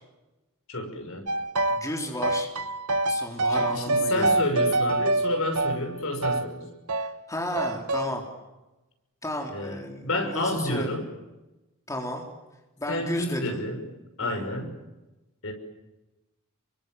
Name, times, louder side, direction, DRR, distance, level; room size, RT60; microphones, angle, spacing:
voice 1, 0.7-1.3 3.5-6.7 9.5-11.1 12.9-13.8 14.2-14.7 15.4-15.5, left 1 dB, 65° left, 5 dB, 6.1 m, -30 dB
sound 1, 1.3-1.9 2.2-6.5 6.9-7.1 7.6-8.1, right 2 dB, 90° right, 1.4 m, -26 dB
voice 2, 1.7-2.5 3.1-4.4 6.9-8.2 9.2-11.0 11.9-12.3 12.8-13.6 14.2-14.5, left 1 dB, 15° left, 1 dB, 3.8 m, -33 dB
29.5 x 24.0 x 7.7 m, 1.0 s
head